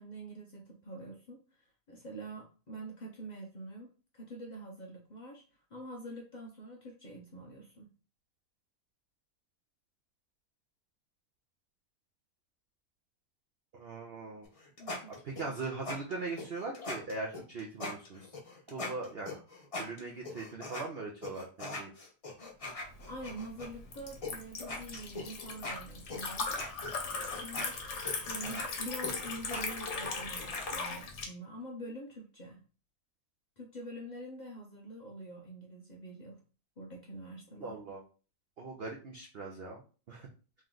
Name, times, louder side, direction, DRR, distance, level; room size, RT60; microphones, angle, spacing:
voice 1, 0.0-5.4 5.7-7.9 14.8-15.5 23.1-26.5 27.2-27.7 28.3-32.6 33.6-36.4 36.8-37.8, right 1 dB, 85° left, -1 dB, 0.4 m, -46 dB
voice 2, 13.7-14.5 15.2-18.3 18.7-19.4 19.8-21.9 37.6-38.0 38.6-39.8 40.1-40.3, right 3 dB, 75° right, 0 dB, 0.5 m, -40 dB
sound 1, 14.4-20.9 21.2-23.7 24.2-24.3 24.6-30.7, left 2 dB, 35° left, 0.5 m, -41 dB
Liquid, 22.9-31.3, left 4 dB, 50° left, 1.0 m, -39 dB
3.2 x 3.0 x 3.8 m, 0.36 s
omnidirectional pair, 1.9 m